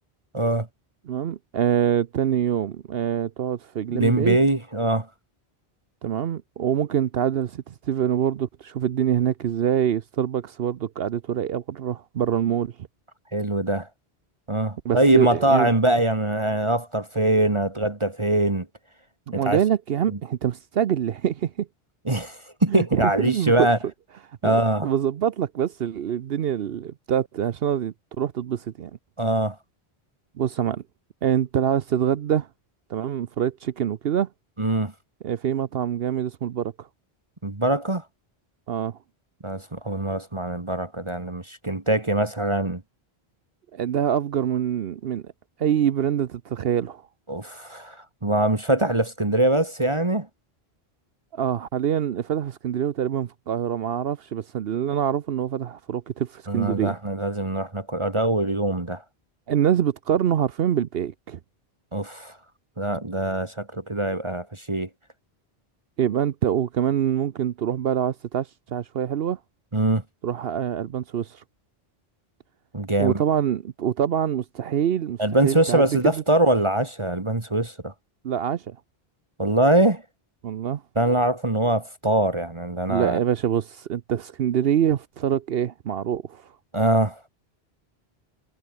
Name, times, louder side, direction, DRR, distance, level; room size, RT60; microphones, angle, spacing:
voice 1, 0.3-0.7 3.9-5.1 13.3-13.9 14.5-18.7 19.3-19.6 20.1-20.2 22.1-23.8 24.4-24.9 29.2-29.6 34.6-34.9 37.4-38.0 39.4-42.8 47.3-50.3 56.5-59.0 61.9-62.4 62.8-64.9 69.7-70.0 72.7-73.2 75.2-77.9 79.4-80.0 81.0-83.2 86.7-87.2, right 1 dB, 30° right, 1.7 m, -23 dB
voice 2, 1.1-4.4 6.0-12.7 14.8-15.7 19.3-21.7 22.7-23.7 24.4-28.9 30.4-30.8 31.2-32.5 32.9-34.3 35.2-36.9 38.7-39.0 43.7-45.3 45.6-47.0 51.3-56.9 59.5-61.4 66.0-69.4 70.2-71.4 73.0-75.2 75.4-76.2 78.2-78.8 80.4-80.8 82.9-86.4, right 9 dB, 70° right, 0.9 m, -25 dB
omnidirectional pair, 1.1 m